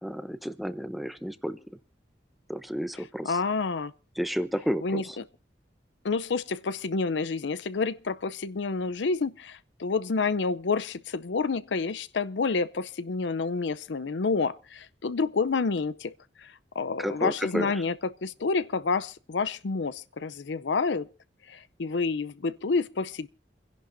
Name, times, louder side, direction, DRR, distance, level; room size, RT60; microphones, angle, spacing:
voice 1, 0.0-1.6 2.5-3.4 4.2-5.2 17.0-17.8, equal, ahead, 0.7 m, -31 dB
voice 2, 3.2-3.9 4.8-5.2 6.0-16.1 16.4-21.1 21.5-23.3, left 4 dB, 90° left, 0.6 m, -29 dB
28.0 x 11.0 x 2.6 m
head